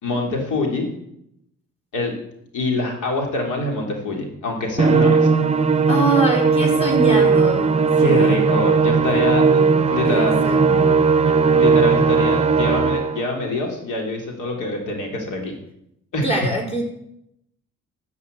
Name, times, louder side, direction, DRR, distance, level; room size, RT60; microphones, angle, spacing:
voice 1, 0.0-0.9 1.9-2.1 2.5-5.3 8.0-10.5 11.5-15.5 16.1-16.5, left 2 dB, 85° left, 2 dB, 3.4 m, -25 dB
Musical instrument, 4.8-13.2, right 5 dB, 20° right, 0.9 m, -17 dB
voice 2, 5.9-7.7 8.0-8.4 9.5-9.8 10.1-11.0 16.2-16.8, right 2 dB, 20° left, -1 dB, 4.3 m, -24 dB
12.5 x 6.9 x 8.2 m, 0.78 s
cardioid pair, 90°, 30 cm